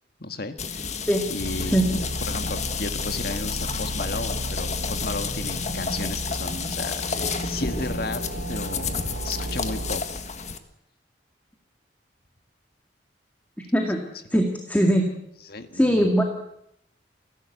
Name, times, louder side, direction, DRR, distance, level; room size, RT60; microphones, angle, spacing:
voice 1, 0.2-1.0 1.3-9.0 9.2-10.0 14.3-14.4 15.5-16.1, left 3 dB, 60° left, 8 dB, 1.8 m, -34 dB
sound 1, 0.6-10.6, left 5 dB, 40° left, 1.7 m, -31 dB
sound 2, 1.4-10.0, right 1 dB, 75° right, 1.9 m, -34 dB
voice 2, 14.3-15.1 15.7-16.2, equal, 10° left, 2 dB, 2.2 m, -20 dB
29.5 x 12.0 x 8.1 m, 0.77 s
head